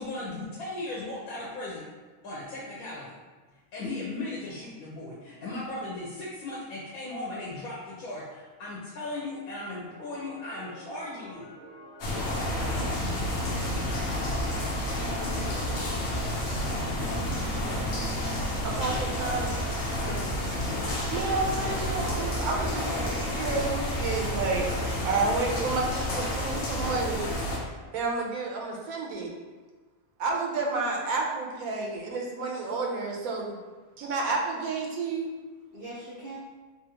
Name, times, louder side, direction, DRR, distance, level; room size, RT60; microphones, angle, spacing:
voice 1, 0.0-1.9 2.2-3.1 3.7-11.5 12.2-13.3, left 2 dB, 85° left, -5 dB, 1.1 m, -37 dB
sound 1, 9.8-26.6, equal, 5° right, 1.0 m, -48 dB
sound 2, 12.0-27.6, left 1 dB, 60° left, 0.9 m, -30 dB
voice 2, 18.6-19.5 21.1-27.3 27.9-29.3 30.2-33.6 34.0-35.3, right 3 dB, 80° right, 0 dB, 1.0 m, -30 dB
voice 3, 20.1-20.8 21.5-21.8 22.8-23.7 35.7-36.4, right 1 dB, 50° right, -9 dB, 0.7 m, -43 dB
3.3 x 2.4 x 2.8 m, 1.3 s
omnidirectional pair, 1.5 m